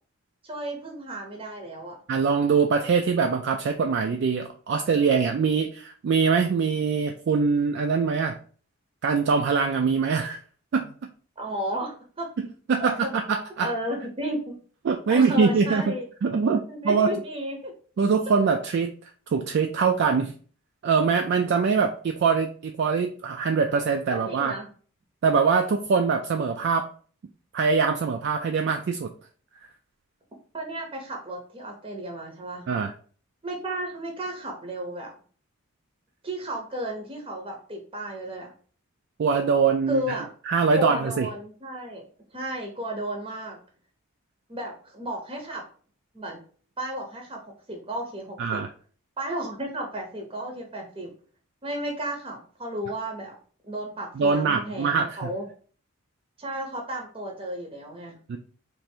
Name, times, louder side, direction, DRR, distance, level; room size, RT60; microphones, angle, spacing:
voice 1, 0.4-2.0 11.4-12.3 12.7-13.1 13.6-14.6 15.1-16.1 16.7-17.7 24.1-24.7 30.5-32.7 33.4-35.1 36.2-38.5 39.9-40.3 40.7-42.0 42.3-43.6 44.5-45.6 46.1-46.4 46.8-47.4 47.7-48.6 49.2-51.1 51.6-53.3 53.6-55.5 56.4-58.1, right 1 dB, 25° right, 1 dB, 0.7 m, -33 dB
voice 2, 2.1-8.4 9.0-10.4 10.7-10.9 12.7-13.7 14.8-15.9 16.2-17.1 18.0-18.9 19.3-20.3 20.8-24.5 25.2-26.9 27.5-29.1 32.7-32.9 39.2-40.2 40.5-41.3 48.4-48.7 54.2-55.3 58.3-58.4, right 5 dB, 55° right, 4 dB, 0.3 m, -23 dB
3.2 x 2.5 x 4.3 m, 0.43 s
head